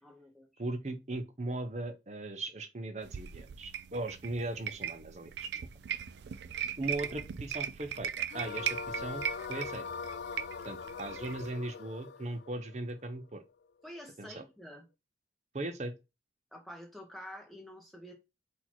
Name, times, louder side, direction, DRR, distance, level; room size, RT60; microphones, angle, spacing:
voice 1, 0.0-0.6 13.8-14.8 16.5-18.1, equal, ahead, 1.1 m, -48 dB
voice 2, 0.6-5.5 6.8-9.8 10.6-13.4 14.2-14.4 15.5-15.9, right 2 dB, 40° right, 0.7 m, -38 dB
sound 1, 3.0-11.5, right 9 dB, 75° right, 0.4 m, -39 dB
sound 2, 8.3-13.5, left 5 dB, 70° left, 0.3 m, -42 dB
4.1 x 2.8 x 4.3 m
head